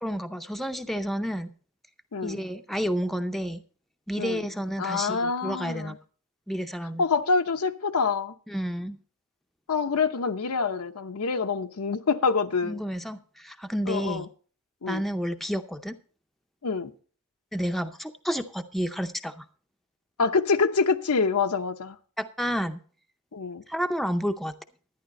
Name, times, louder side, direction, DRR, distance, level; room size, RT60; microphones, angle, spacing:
voice 1, 0.0-1.5 2.2-3.6 4.1-6.0 6.5-7.0 8.5-9.0 12.6-14.3 14.9-16.0 17.5-19.4 22.2-22.8 23.7-24.5, equal, ahead, 0.5 m, -30 dB
voice 2, 4.8-6.0 7.0-8.3 9.7-12.8 13.9-14.3 14.8-15.0 16.6-16.9 20.2-22.0 23.3-23.6, left 4 dB, 80° left, 0.8 m, -26 dB
11.5 x 10.5 x 4.1 m
head